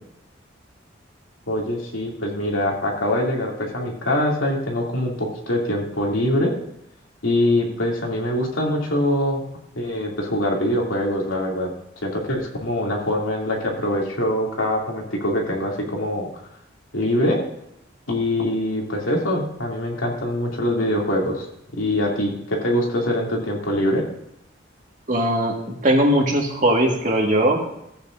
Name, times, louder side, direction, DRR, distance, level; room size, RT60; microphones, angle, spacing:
voice 1, 1.5-6.5 7.2-9.4 9.7-11.7 12.0-16.3 16.9-17.4 18.1-21.5 21.7-24.0, left 1 dB, 85° left, -2 dB, 2.7 m, -23 dB
voice 2, 25.1-27.6, right 1 dB, 40° right, 1 dB, 1.8 m, -19 dB
15.0 x 8.9 x 2.6 m, 0.80 s
head